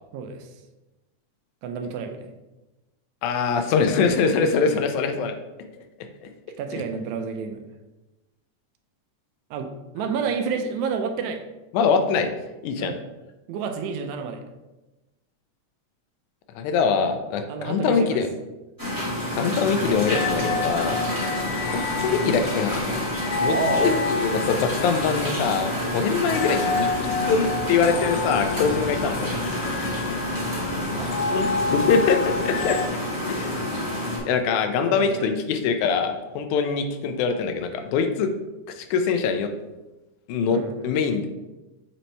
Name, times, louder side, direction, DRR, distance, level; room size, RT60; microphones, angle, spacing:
voice 1, 0.1-0.5 1.6-2.3 4.6-4.8 6.6-7.6 9.5-11.4 12.8-13.0 13.5-14.4 17.5-18.2 21.3-21.5 23.5-23.9 30.9-31.1 34.8-35.2 40.5-40.7, right 5 dB, 80° right, 6 dB, 2.0 m, -30 dB
voice 2, 3.2-5.3 6.2-6.3 6.7-6.8 11.7-12.3 12.6-12.9 16.6-18.3 19.4-21.0 21.7-22.8 23.4-29.3 31.2-32.8 33.3-33.6 34.3-38.3 38.8-39.5 40.3-41.3, left 5 dB, 90° left, 7 dB, 2.1 m, -23 dB
sound 1, 18.8-34.2, left 1 dB, 10° right, 1.1 m, -28 dB
sound 2, 19.6-32.9, left 3 dB, 75° left, 1.5 m, -30 dB
7.4 x 4.2 x 3.3 m, 1.1 s
omnidirectional pair, 3.4 m